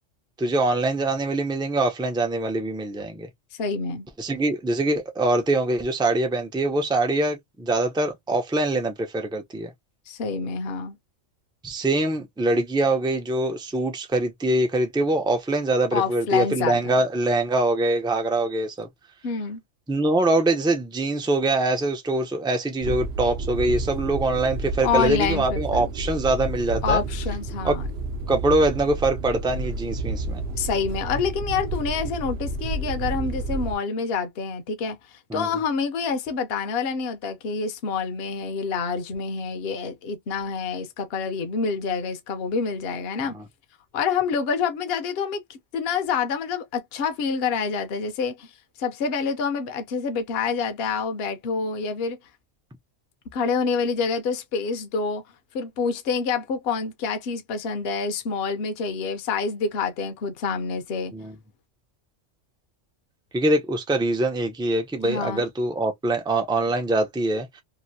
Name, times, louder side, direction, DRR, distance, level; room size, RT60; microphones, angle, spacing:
voice 1, 0.4-3.3 4.2-9.7 11.6-18.9 19.9-27.0 27.6-27.7 28.3-30.4 35.3-35.5 43.3-43.4 61.1-61.3 63.3-67.6, right 2 dB, 5° right, 0.4 m, -23 dB
voice 2, 3.6-4.1 10.1-11.0 15.9-17.0 19.2-19.6 24.8-25.9 26.8-27.9 30.6-35.0 35.3-43.3 43.9-48.5 48.8-52.2 53.3-55.2 55.5-61.1 65.0-65.4, left 5 dB, 60° left, 0.9 m, -27 dB
sound 1, 22.8-33.7, right 3 dB, 65° right, 0.8 m, -30 dB
2.9 x 2.5 x 2.6 m
omnidirectional pair, 1.3 m